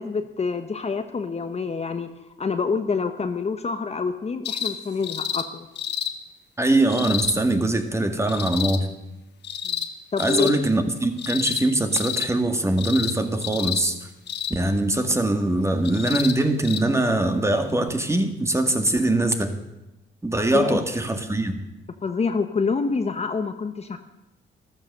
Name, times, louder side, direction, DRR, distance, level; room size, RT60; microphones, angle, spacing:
voice 1, 0.0-2.1 2.4-5.7 9.6-9.7 10.1-10.6 20.5-20.8 22.0-24.0, left 5 dB, 30° left, 8 dB, 1.0 m, -26 dB
sound 1, 4.4-4.7 5.0-5.4 5.8-6.1 6.9-7.3 8.3-8.8 9.4-9.9 10.2-10.5 11.2-11.6 11.9-12.3 12.8-13.1 13.4-13.8 14.3-14.6 15.8-16.3 16.6-16.8 17.9-18.0, left 9 dB, 60° left, 1.3 m, -29 dB
voice 2, 6.6-8.9 10.2-14.0 14.5-19.6 20.2-21.7, right 1 dB, 15° right, 7 dB, 1.8 m, -22 dB
14.0 x 12.5 x 6.7 m, 0.97 s
cardioid pair, 90°, 20 cm